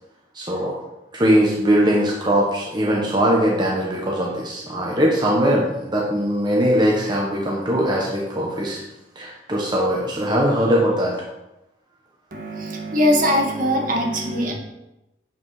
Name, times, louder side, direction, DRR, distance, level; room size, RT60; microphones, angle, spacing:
voice 1, 0.3-0.8 1.1-8.8 9.2-11.2, equal, 25° right, -3 dB, 1.1 m, -20 dB
voice 2, 12.3-14.5, equal, 50° right, 1 dB, 1.6 m, -21 dB
7.9 x 5.2 x 4.8 m, 0.94 s
head